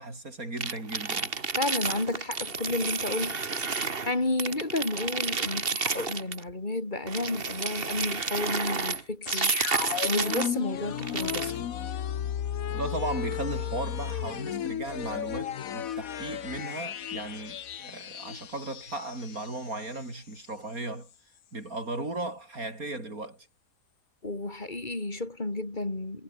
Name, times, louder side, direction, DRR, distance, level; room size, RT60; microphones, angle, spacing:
voice 1, 0.0-1.3 12.7-21.1 21.5-23.5, right 2 dB, 80° right, 6.9 m, -36 dB
sound 1, 0.6-4.1 4.4-6.4 7.1-10.5 11.0-11.6, right 4 dB, 40° right, 1.9 m, -31 dB
voice 2, 1.6-3.4 4.1-9.5 10.0-11.5 24.2-26.2, left 2 dB, 30° left, 3.8 m, -31 dB
sound 2, 9.2-20.0 20.3-20.4, left 9 dB, 75° left, 1.4 m, -34 dB
omnidirectional pair, 1.5 m